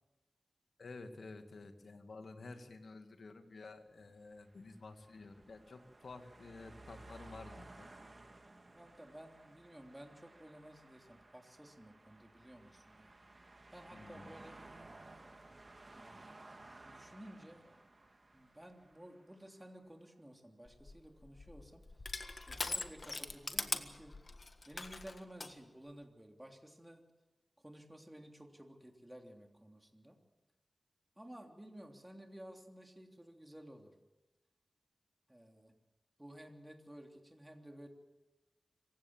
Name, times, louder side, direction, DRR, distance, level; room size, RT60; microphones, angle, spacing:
voice 1, 0.8-8.0 13.9-14.4, left 3 dB, 75° left, 7 dB, 2.1 m, -51 dB
sound 1, 4.2-19.6, right 2 dB, 40° right, 2.4 m, -57 dB
voice 2, 8.7-13.1 13.7-14.6 15.9-16.4 16.8-17.6 18.3-21.8 22.5-24.2 24.6-27.0 27.6-30.2 31.2-33.9 35.3-35.7 36.2-37.9, equal, 10° right, 3 dB, 3.2 m, -54 dB
Crushing, 20.7-25.5, left 3 dB, 50° left, 1.6 m, -42 dB
25.5 x 16.0 x 7.4 m, 1.1 s
wide cardioid pair, 60°, 0 cm